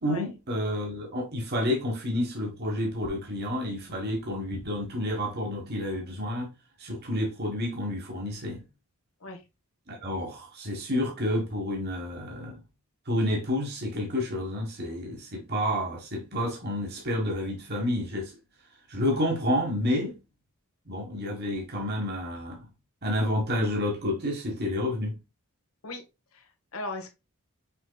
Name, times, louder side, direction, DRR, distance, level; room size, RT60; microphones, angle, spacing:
voice 1, 0.0-6.5 6.8-8.6 9.9-12.6 13.0-18.3 18.9-20.2 20.9-22.6 23.0-25.2, left 1 dB, 45° right, 1.5 m, -29 dB
voice 2, 26.3-27.1, left 2 dB, 65° left, 1.1 m, -38 dB
5.8 x 3.6 x 2.3 m
head